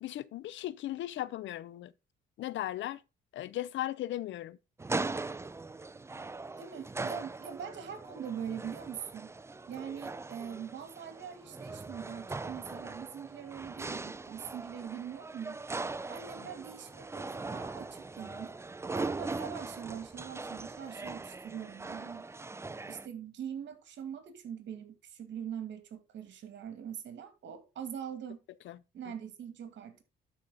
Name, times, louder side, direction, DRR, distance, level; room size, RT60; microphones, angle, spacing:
voice 1, 0.0-1.9 2.4-3.0 3.3-4.6 16.4-16.5 28.6-28.8 29.1-29.2, left 14 dB, 70° left, 0.5 m, -37 dB
sound 1, 4.8-23.1, right 3 dB, 15° right, 0.4 m, -40 dB
voice 2, 6.6-9.3 9.7-15.6 16.1-18.5 18.9-22.2 22.9-28.4 28.9-30.0, right 8 dB, 65° right, 2.4 m, -42 dB
12.0 x 5.1 x 3.9 m
cardioid pair, 90°, 20 cm